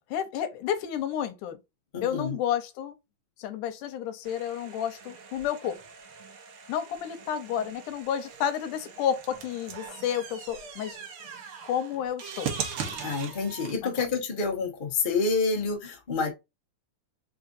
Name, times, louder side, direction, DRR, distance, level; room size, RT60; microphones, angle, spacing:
voice 1, 0.1-1.6 2.0-3.0 3.4-5.8 6.7-11.0 11.6-12.5 13.8-13.9, left 9 dB, 85° left, 2.3 m, -31 dB
voice 2, 1.9-2.4 13.0-16.3, left 4 dB, 30° left, 0.8 m, -28 dB
sound 1, 4.2-13.7, right 6 dB, 65° right, 1.4 m, -40 dB
4.7 x 3.8 x 2.5 m
omnidirectional pair, 3.6 m